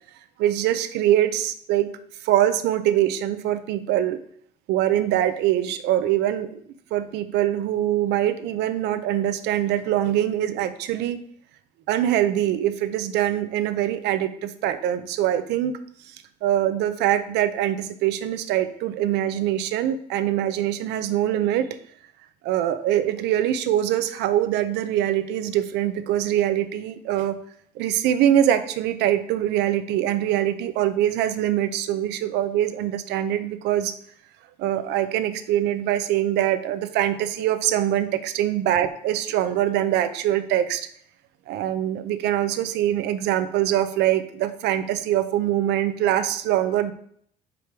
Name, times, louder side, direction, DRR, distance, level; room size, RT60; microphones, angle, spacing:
voice 1, 0.4-1.9 2.2-4.2 4.7-6.6 6.9-11.2 11.9-15.8 16.1-16.2 16.4-21.7 22.4-27.4 27.8-33.9 34.6-40.9 41.5-46.9, right 12 dB, 85° right, 11 dB, 0.6 m, -23 dB
5.1 x 4.9 x 4.6 m, 0.64 s
cardioid pair, 110°, 17 cm